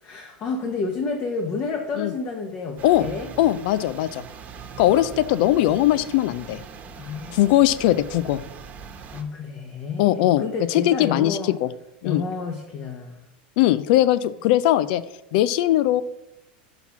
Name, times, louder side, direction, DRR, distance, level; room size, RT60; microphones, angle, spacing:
voice 1, 0.0-3.3 7.0-7.4 9.1-11.6 12.0-13.3, left 4 dB, 40° left, 2 dB, 1.1 m, -30 dB
sound 1, 2.8-9.2, right 6 dB, 30° right, 1.1 m, -41 dB
voice 2, 3.4-4.2 4.8-6.6 7.3-8.4 10.0-10.4 10.7-11.7 12.0-12.2 13.6-15.0 15.3-16.0, left 14 dB, 65° left, 16 dB, 0.4 m, -20 dB
5.9 x 5.8 x 5.9 m, 0.92 s
supercardioid pair, 120°, 5 cm